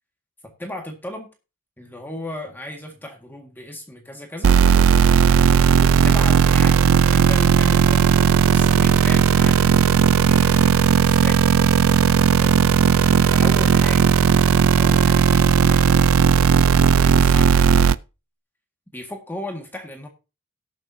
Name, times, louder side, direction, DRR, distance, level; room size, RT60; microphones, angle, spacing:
voice 1, 0.4-1.3 1.8-4.5 5.7-9.6 10.3-11.4 12.4-12.5 13.3-14.1 14.8-16.2 17.0-17.9 18.9-20.1, left 1 dB, 10° left, 2 dB, 1.8 m, -36 dB
sound 1, 4.4-18.0, right 6 dB, 65° right, 0.4 m, -16 dB
18.0 x 7.1 x 2.7 m, 0.29 s
head